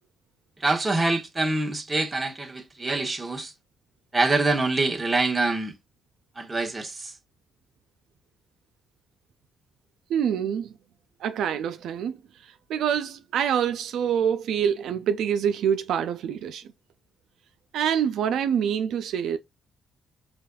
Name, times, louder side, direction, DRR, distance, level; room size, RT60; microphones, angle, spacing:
voice 1, 0.6-3.5 4.1-5.7 6.4-7.1, right 2 dB, 20° right, 1.1 m, -25 dB
voice 2, 10.1-10.7 11.2-12.2 12.4-16.6 17.7-19.4, right 8 dB, 75° right, 0.4 m, -26 dB
5.0 x 2.3 x 2.3 m
cardioid pair, 90°, 0 cm